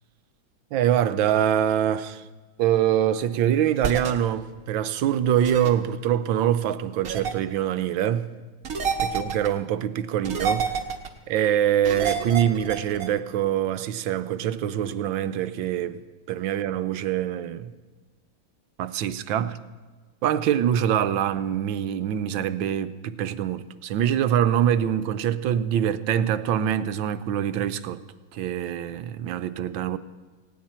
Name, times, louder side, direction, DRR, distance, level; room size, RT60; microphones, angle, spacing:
voice 1, 0.7-2.2 2.6-8.3 9.0-10.8 11.3-16.0 16.3-17.7 18.8-19.6 20.2-28.0 28.3-30.0, right 10 dB, 75° right, 1.4 m, -24 dB
sound 1, 3.8-4.1 5.4-5.7 7.0-7.3 8.6-9.5 10.2-11.1 11.8-13.1, right 6 dB, 50° right, 1.6 m, -28 dB
19.0 x 17.0 x 4.3 m
omnidirectional pair, 2.2 m